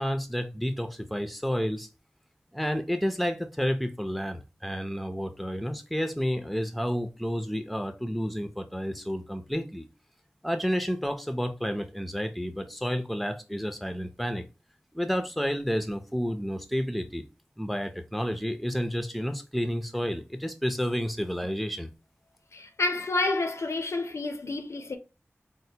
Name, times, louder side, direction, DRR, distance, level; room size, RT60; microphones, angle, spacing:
voice 1, 0.0-1.9 2.5-9.9 10.4-14.4 14.9-17.2 17.6-21.9, equal, ahead, 0.5 m, -30 dB
voice 2, 22.5-25.0, left 2 dB, 80° left, 0.5 m, -29 dB
4.3 x 2.1 x 2.7 m
wide cardioid pair, 55°, 5 cm